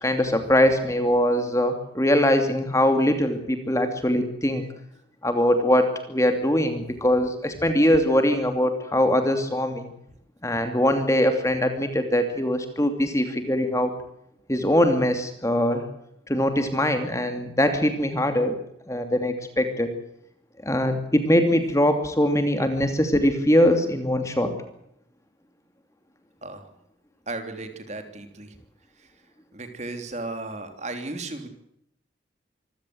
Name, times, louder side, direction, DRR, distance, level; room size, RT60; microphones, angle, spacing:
voice 1, 0.0-4.6 5.2-9.9 10.4-13.9 14.5-15.8 16.3-18.6 18.9-20.0 20.6-24.6, left 1 dB, 15° left, 7 dB, 2.7 m, -22 dB
voice 2, 27.3-28.6 29.0-29.1 29.5-31.5, right 2 dB, 35° right, 7 dB, 3.3 m, -35 dB
25.5 x 16.0 x 7.8 m, 0.75 s
head